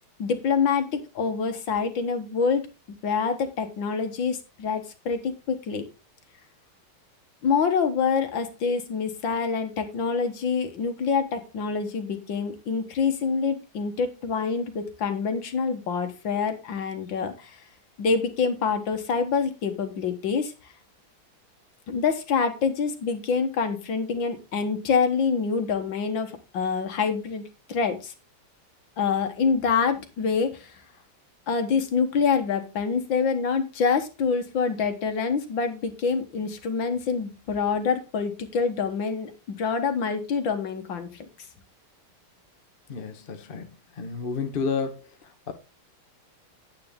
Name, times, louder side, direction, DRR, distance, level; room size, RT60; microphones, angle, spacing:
voice 1, 0.2-2.7 3.0-5.9 7.4-17.6 18.0-20.5 21.9-27.4 27.7-28.1 29.0-30.7 31.5-41.3, left 5 dB, 60° left, 1.9 m, -26 dB
voice 2, 42.9-43.7 43.9-45.1 45.5-45.6, left 5 dB, 35° left, 1.0 m, -30 dB
9.5 x 8.3 x 3.6 m
omnidirectional pair, 2.4 m